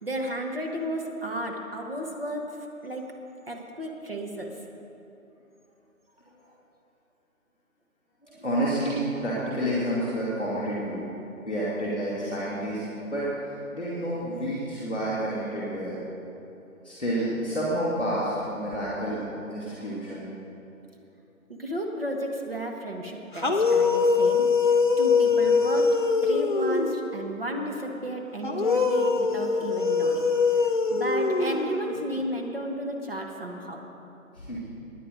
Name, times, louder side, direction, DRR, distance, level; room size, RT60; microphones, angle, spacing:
voice 1, 0.0-3.1 3.5-4.6 21.5-33.9, right 1 dB, 40° right, 1 dB, 1.4 m, -33 dB
voice 2, 8.2-11.1 11.5-12.8 13.1-16.0 16.8-20.2 34.3-34.6, equal, 5° left, -14 dB, 1.3 m, -29 dB
sound 1, 23.3-27.1 28.4-32.0, left 4 dB, 35° left, 0.9 m, -23 dB
17.0 x 9.7 x 5.2 m, 2.9 s
figure-of-eight pair, 170°, 43 cm